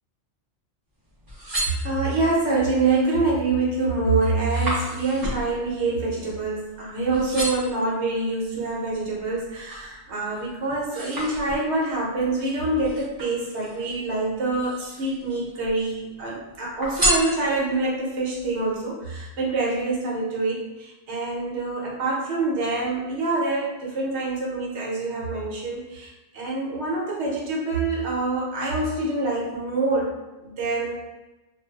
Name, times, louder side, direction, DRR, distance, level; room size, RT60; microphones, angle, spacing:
sound 1, 1.1-2.4 3.0-3.4 3.7-6.8 7.1-7.8 8.4-9.9 10.3-11.9 12.8-13.9 14.5-15.3 15.6-16.3 16.8-17.9 18.4-18.5, right 1 dB, 30° right, 0.4 m, -31 dB
voice 1, 1.8-30.9, right 3 dB, 65° right, -4 dB, 0.9 m, -26 dB
2.4 x 2.3 x 2.3 m, 1.1 s
omnidirectional pair, 1.3 m